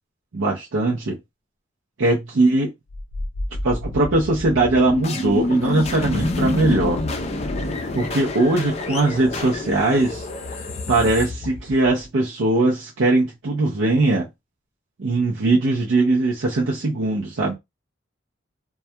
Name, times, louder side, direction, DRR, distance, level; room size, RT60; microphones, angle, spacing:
voice 1, 0.3-1.2 2.0-2.7 3.6-7.0 7.9-10.3 10.9-14.3 15.0-17.5, right 2 dB, 85° right, 0.5 m, -20 dB
sound 1, 2.9-12.0, left 2 dB, 35° left, 0.4 m, -28 dB
2.2 x 2.2 x 2.7 m
head